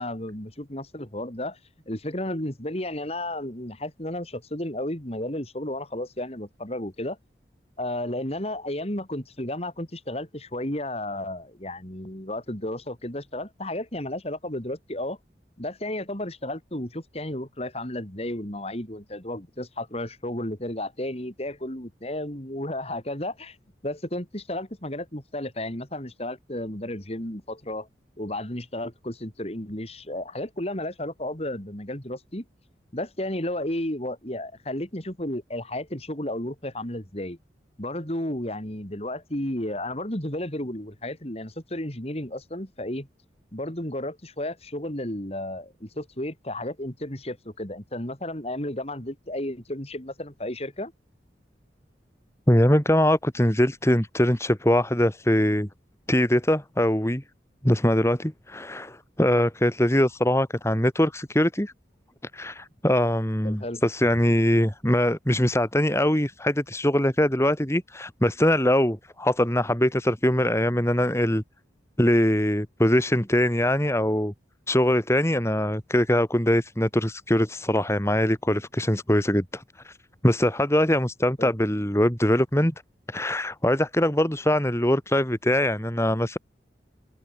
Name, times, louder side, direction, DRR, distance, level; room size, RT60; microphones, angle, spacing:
voice 1, 0.0-1.6 1.9-7.2 7.8-15.2 15.6-23.6 23.8-27.9 28.2-32.4 32.9-37.4 37.8-43.1 43.5-50.9 63.4-63.8 81.4-81.5, left 1 dB, 35° left, 4.2 m, -33 dB
voice 2, 52.5-55.7 56.1-57.2 57.6-61.7 62.3-71.4 72.0-74.3 74.7-79.9 80.2-82.7 83.1-86.4, left 1 dB, 15° left, 3.0 m, -22 dB
head